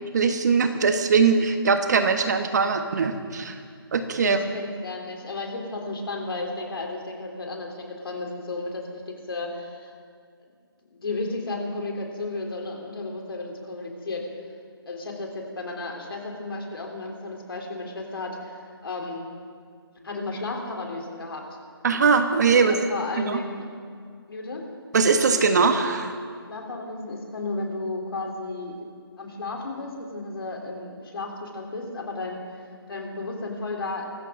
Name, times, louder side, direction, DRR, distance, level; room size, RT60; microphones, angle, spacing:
voice 1, 0.1-3.6 3.9-4.4 21.8-22.7 23.2-23.4 24.9-26.2, right 5 dB, 45° right, 7 dB, 1.4 m, -21 dB
voice 2, 4.2-9.9 10.9-14.3 14.9-19.3 20.0-21.4 22.5-23.7 24.3-24.6 26.5-28.8 29.2-32.6 32.9-34.1, left 3 dB, 65° left, 1 dB, 3.8 m, -33 dB
25.0 x 14.0 x 3.9 m, 2.1 s
hypercardioid pair, 165°, 13 cm